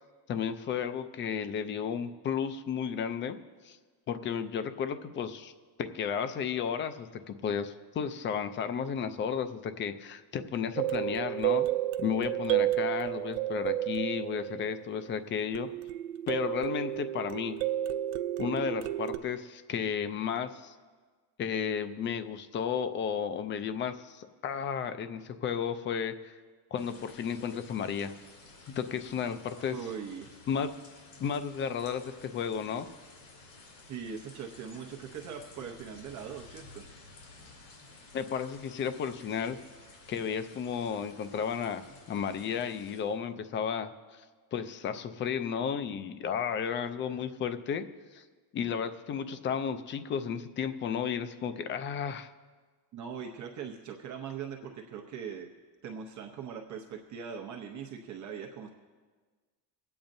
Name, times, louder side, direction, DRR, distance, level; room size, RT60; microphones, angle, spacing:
voice 1, 0.3-3.4 3.6-3.8 4.1-5.5 5.8-11.7 12.0-15.7 16.3-17.6 18.4-20.7 21.4-26.3 26.7-28.1 28.7-29.8 30.5-30.7 31.2-32.9 38.1-39.6 40.1-44.2 44.5-47.8 48.1-48.2 48.5-52.3, left 7 dB, 30° left, 10 dB, 0.4 m, -33 dB
sound 1, 10.8-15.0 15.5-19.2, right 13 dB, 85° right, 0.6 m, -31 dB
sound 2, 26.8-43.0, left 3 dB, 80° left, 3.5 m, -54 dB
voice 2, 29.6-30.3 33.9-36.8 52.9-55.5 55.8-58.7, right 7 dB, 40° right, 1 dB, 0.9 m, -41 dB
24.5 x 8.8 x 2.6 m, 1.4 s
cardioid pair, 150°, 43 cm